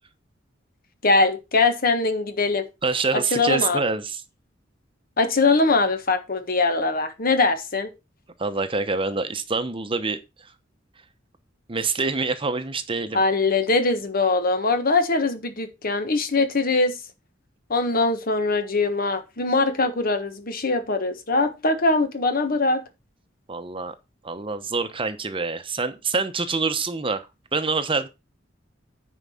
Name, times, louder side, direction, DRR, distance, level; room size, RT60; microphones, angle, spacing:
voice 1, 1.0-2.7 3.1-3.8 5.2-7.9 13.1-17.0 17.7-22.8, left 3 dB, 50° left, 1.4 m, -22 dB
voice 2, 2.8-4.2 8.4-10.5 11.7-13.2 23.5-23.9 24.2-28.1, right 4 dB, 30° right, 0.9 m, -26 dB
9.8 x 4.8 x 5.6 m
head